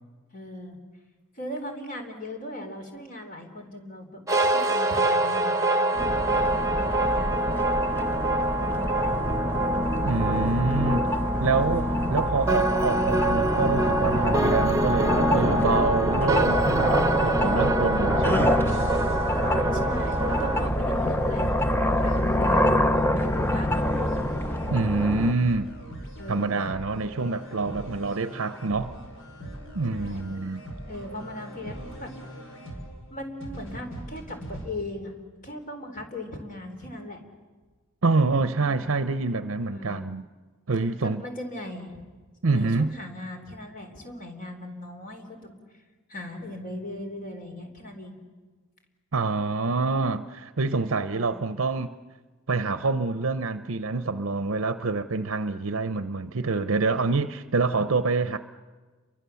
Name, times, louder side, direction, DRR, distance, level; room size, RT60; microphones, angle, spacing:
voice 1, 0.3-0.8 1.4-6.2 6.5-7.8 8.6-9.1 11.9-12.3 19.7-21.5 21.9-22.7 23.1-23.8 26.2-26.6 29.9-30.3 30.9-32.1 33.1-35.1 35.4-37.2 38.6-38.9 39.7-40.0 41.0-41.9 42.5-45.6 46.1-48.2 51.1-51.4, left 1 dB, 40° left, 3.8 m, -39 dB
sound 1, 4.3-20.7, right 2 dB, 15° right, 1.2 m, -26 dB
sound 2, 6.0-25.3, left 1 dB, 10° left, 0.8 m, -26 dB
voice 2, 10.0-11.1 11.4-18.5 24.7-25.7 26.3-28.9 29.7-30.6 38.0-40.2 40.7-41.2 42.4-42.9 49.1-51.9 52.5-58.4, right 3 dB, 65° right, 0.7 m, -26 dB
sound 3, 18.7-34.7, equal, 60° left, 4.8 m, -41 dB
30.0 x 24.0 x 7.0 m
head